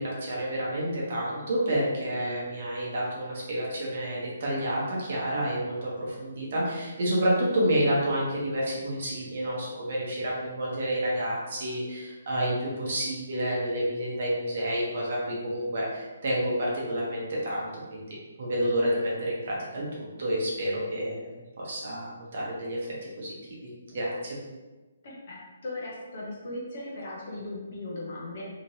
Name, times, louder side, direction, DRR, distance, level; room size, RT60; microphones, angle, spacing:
voice 1, 0.0-18.1 18.4-21.3 21.6-22.8 23.2-23.3 23.6-24.4, equal, 40° right, -5 dB, 0.8 m, -29 dB
voice 2, 25.0-28.5, left 2 dB, 35° left, -4 dB, 0.8 m, -38 dB
3.1 x 2.9 x 2.7 m, 1.2 s
hypercardioid pair, 180°, 0 cm